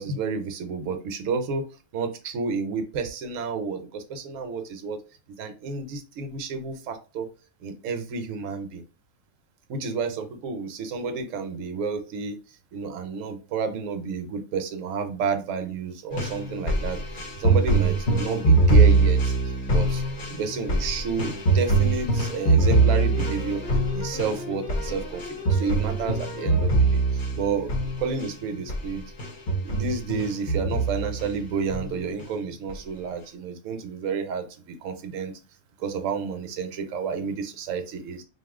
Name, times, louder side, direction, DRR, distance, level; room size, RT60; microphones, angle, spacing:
voice 1, 0.0-1.6 1.9-5.0 5.4-7.3 7.6-8.8 9.7-12.4 12.7-19.3 19.7-20.0 20.3-23.6 23.9-25.2 25.5-29.0 29.6-35.3 35.8-38.2, right 5 dB, 70° right, 6 dB, 0.9 m, -30 dB
sound 1, 16.1-28.3 28.7-28.9 29.2-31.3 31.7-32.3 32.7-32.8, right 3 dB, 50° left, 0.7 m, -23 dB
2.7 x 2.4 x 3.4 m, 0.34 s
omnidirectional pair, 1.5 m